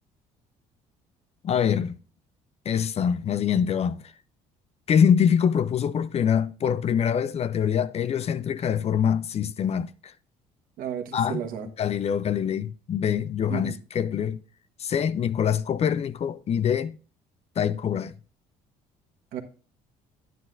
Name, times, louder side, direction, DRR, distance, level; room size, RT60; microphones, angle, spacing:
voice 1, 1.4-2.0 2.7-4.0 4.9-10.1 11.1-11.4 11.8-14.4 14.8-17.0 17.6-18.1, left 8 dB, 45° left, 0.5 m, -24 dB
voice 2, 10.8-11.7 13.5-13.8 19.3-19.4, right 9 dB, 70° right, 1.4 m, -33 dB
10.5 x 9.2 x 2.6 m
supercardioid pair, 80°, 15 cm